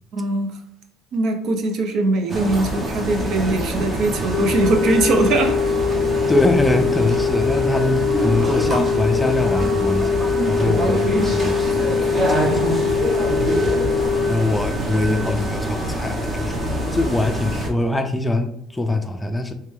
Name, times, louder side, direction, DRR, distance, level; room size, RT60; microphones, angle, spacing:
voice 1, 0.1-0.6 1.1-5.6, right 2 dB, 60° right, 5 dB, 0.7 m, -21 dB
sound 1, 2.3-17.7, right 1 dB, 25° right, 0.8 m, -25 dB
sound 2, 4.3-14.3, left 6 dB, 90° left, 0.3 m, -22 dB
voice 2, 6.3-12.9 13.5-13.8 14.3-16.6 16.9-19.5, left 2 dB, 10° left, 6 dB, 0.4 m, -23 dB
3.3 x 3.3 x 3.2 m, 0.75 s
cardioid pair, 115°, 0 cm